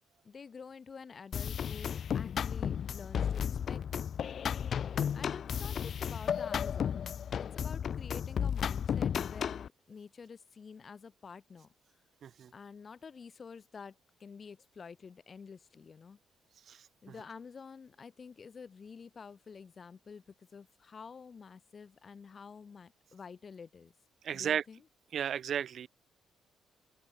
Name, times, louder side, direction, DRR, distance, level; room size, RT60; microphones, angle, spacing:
voice 1, 0.2-4.0 5.1-11.7 12.5-16.2 17.0-23.9 24.3-24.8, left 5 dB, 40° left, 5.3 m, -49 dB
sound 1, 1.3-9.7, left 8 dB, 55° left, 0.5 m, -34 dB
voice 2, 24.2-24.6 25.1-25.9, right 8 dB, 60° right, 1.9 m, -34 dB
open air
cardioid pair, 90°, 0 cm